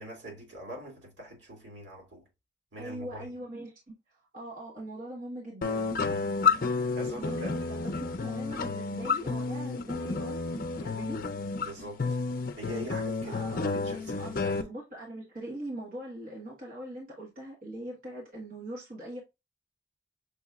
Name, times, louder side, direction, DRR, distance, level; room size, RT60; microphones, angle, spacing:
voice 1, 0.0-2.3 2.7-3.4 6.1-6.4 6.9-7.7 7.9-8.0 11.6-12.2 12.6-14.6, equal, 80° right, 2.3 m, -43 dB
voice 2, 2.8-3.9 4.3-6.0 7.2-11.2 13.2-13.7 14.2-19.2, right 1 dB, 50° right, 1.4 m, -41 dB
sound 1, 5.6-14.6, left 4 dB, 50° left, 0.5 m, -31 dB
6.3 x 2.9 x 2.3 m
head